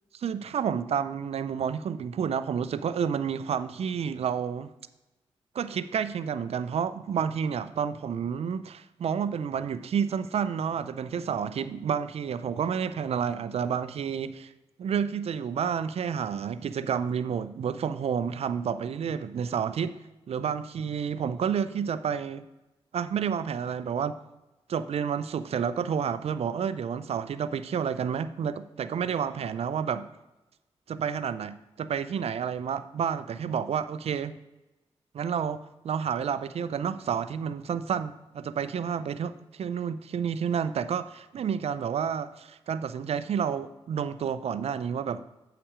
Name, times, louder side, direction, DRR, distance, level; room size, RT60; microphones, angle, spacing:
voice 1, 0.2-4.7 5.5-14.5 14.8-20.0 20.3-22.5 22.9-24.2 24.7-30.1 30.9-34.3 35.1-45.2, right 7 dB, 70° right, 14 dB, 0.5 m, -30 dB
8.4 x 5.9 x 4.8 m, 1.0 s
cardioid pair, 55°, 11 cm